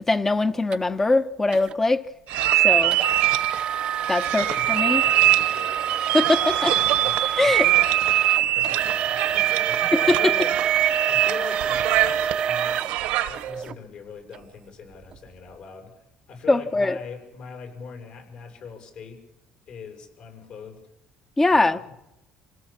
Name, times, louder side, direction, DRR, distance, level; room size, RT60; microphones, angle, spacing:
voice 1, 0.1-2.0 2.6-3.0 4.1-5.0 6.1-6.7 7.4-7.6 9.9-10.3 16.5-17.0 21.4-21.8, left 2 dB, 15° left, 1.1 m, -21 dB
sound 1, 0.7-0.8 1.5-1.7 2.9-13.7 14.3-14.4 15.0-15.2, right 8 dB, 45° right, 0.8 m, -28 dB
sound 2, 2.3-13.5, right 14 dB, 90° right, 1.5 m, -23 dB
voice 2, 4.3-4.7 5.0-5.8 6.7-7.9 8.5-10.6 10.8-19.2 19.7-20.8 21.5-21.9, left 5 dB, 60° left, 7.2 m, -41 dB
27.5 x 17.0 x 7.4 m
cardioid pair, 130°, 2 cm